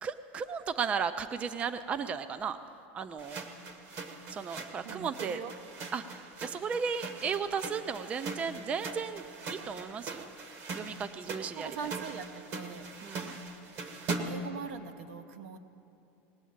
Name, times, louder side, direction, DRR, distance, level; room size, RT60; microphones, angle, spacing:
voice 1, 0.0-2.6 2.9-3.4 4.3-5.4 5.9-10.3 10.7-11.8 13.0-13.4, right 6 dB, 20° right, 12 dB, 0.3 m, -35 dB
sound 1, 3.2-14.5, right 3 dB, 40° right, 1.1 m, -41 dB
voice 2, 4.8-5.5 11.3-12.9 14.2-15.6, right 6 dB, 75° right, 9 dB, 0.9 m, -42 dB
19.0 x 8.3 x 8.7 m, 2.8 s
supercardioid pair, 160°, 7 cm